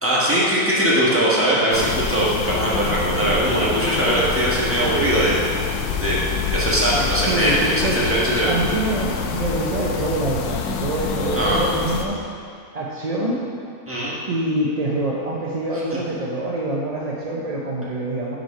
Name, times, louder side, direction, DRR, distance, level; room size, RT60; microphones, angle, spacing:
voice 1, 0.0-5.4 6.0-6.2 6.5-8.5 11.3-11.6 13.9-14.1, right 1 dB, 10° right, -7 dB, 1.3 m, -20 dB
sound 1, 1.7-12.0, left 6 dB, 85° left, 1.2 m, -26 dB
voice 2, 7.3-8.1 8.5-12.2 12.7-13.4 14.3-18.4, right 2 dB, 50° right, -5 dB, 0.4 m, -25 dB
6.0 x 5.5 x 5.5 m, 2.3 s
omnidirectional pair, 1.6 m